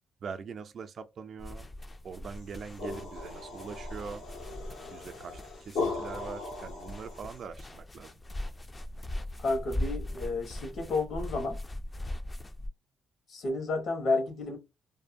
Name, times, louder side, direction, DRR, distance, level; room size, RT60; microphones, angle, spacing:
voice 1, 0.2-1.7 2.0-4.2 4.9-8.2, right 6 dB, 55° right, 0.4 m, -42 dB
sound 1, 1.4-12.7, left 1 dB, 25° left, 0.4 m, -40 dB
sound 2, 2.4-7.4, left 3 dB, 90° left, 1.1 m, -38 dB
voice 2, 9.4-11.6 13.3-14.6, left 3 dB, 65° left, 1.1 m, -31 dB
2.6 x 2.1 x 2.5 m
cardioid pair, 90°, 0 cm